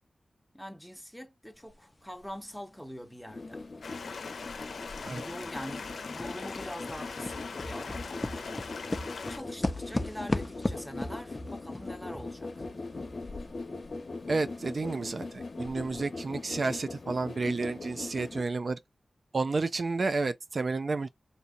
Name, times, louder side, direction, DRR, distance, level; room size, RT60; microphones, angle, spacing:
voice 1, 0.5-3.6 5.0-8.1 9.3-12.7, equal, ahead, 0.9 m, -44 dB
sound 1, 1.7-1.8 2.2-4.1 4.5-14.0 14.3-14.4 14.9-15.0 15.5-16.0, left 2 dB, 25° left, 0.5 m, -37 dB
sound 2, 3.3-18.4, left 3 dB, 60° left, 0.8 m, -41 dB
Stream, 3.8-9.4, left 4 dB, 85° left, 0.5 m, -41 dB
voice 2, 14.3-18.8 19.3-21.1, right 3 dB, 60° right, 0.3 m, -31 dB
2.8 x 2.6 x 3.8 m
cardioid pair, 60°, 0 cm